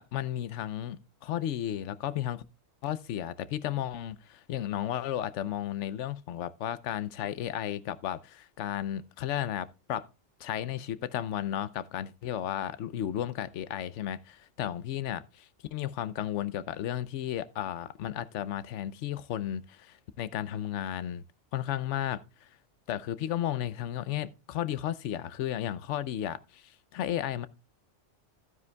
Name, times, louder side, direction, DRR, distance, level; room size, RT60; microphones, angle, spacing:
voice 1, 0.0-2.4 2.8-10.1 10.4-21.2 21.5-22.5 22.9-27.5, left 11 dB, 70° left, 0.9 m, -34 dB
12.0 x 9.6 x 2.2 m
omnidirectional pair, 1.3 m